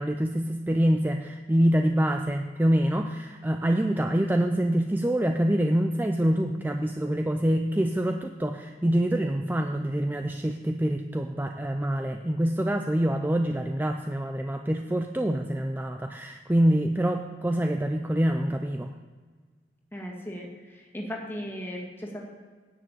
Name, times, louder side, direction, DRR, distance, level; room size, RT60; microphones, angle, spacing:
voice 1, 0.0-18.9, right 1 dB, 10° right, 5 dB, 0.4 m, -25 dB
voice 2, 19.9-22.2, equal, 15° left, -2 dB, 2.0 m, -37 dB
10.5 x 6.6 x 8.3 m, 1.5 s
head